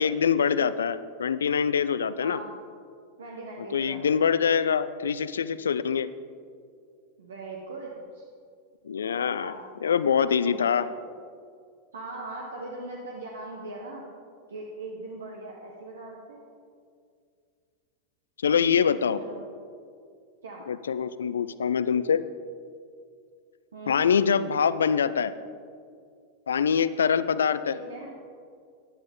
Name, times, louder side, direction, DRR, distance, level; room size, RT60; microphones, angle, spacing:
voice 1, 0.0-2.4 3.7-6.1 8.9-9.5 9.8-10.9 18.4-19.2 20.7-22.2 23.9-25.3 26.5-27.7, left 7 dB, 70° left, 15 dB, 0.4 m, -24 dB
voice 2, 2.2-2.5 3.2-4.2 7.2-8.2 9.4-9.6 10.2-10.9 11.9-14.0 14.5-16.4 19.2-19.4 20.4-20.6 23.7-24.0 27.7-28.1, right 2 dB, 70° right, -1 dB, 1.3 m, -40 dB
15.0 x 10.5 x 3.8 m, 2.2 s
figure-of-eight pair, 90°, 0 cm